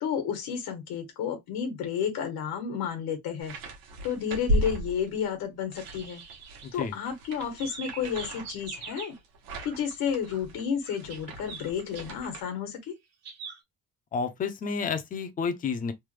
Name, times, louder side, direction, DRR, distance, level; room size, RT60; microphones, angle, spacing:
voice 1, 0.0-3.5 4.0-6.2 6.7-9.1 9.6-13.0, left 7 dB, 85° left, 1.2 m, -31 dB
sound 1, 3.4-5.3 5.7-12.4, right 1 dB, 80° right, 1.1 m, -35 dB
sound 2, 5.8-7.1 7.4-9.2 9.6-10.0 10.2-12.1 13.2-13.6, right 6 dB, 45° right, 0.8 m, -43 dB
voice 2, 6.6-6.9 14.1-15.9, left 5 dB, 25° left, 0.4 m, -30 dB
3.2 x 2.2 x 3.1 m
cardioid pair, 180°, 36 cm